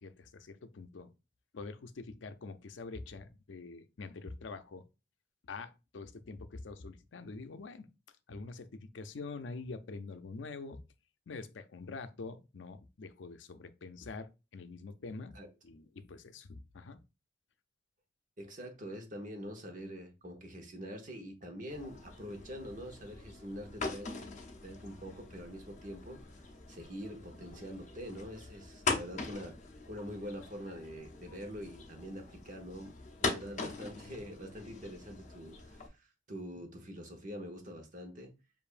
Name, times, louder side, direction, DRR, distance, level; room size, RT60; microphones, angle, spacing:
voice 1, 0.0-1.1 1.5-4.9 5.4-7.9 8.3-10.8 11.3-15.4 15.6-17.0, left 3 dB, 90° left, 0.5 m, -45 dB
voice 2, 18.4-24.2 24.6-26.2 26.7-29.6 29.9-32.9 33.2-38.3, equal, 45° right, 1.0 m, -45 dB
sound 1, 21.7-35.9, left 4 dB, 40° left, 0.8 m, -42 dB
6.8 x 2.6 x 2.5 m
head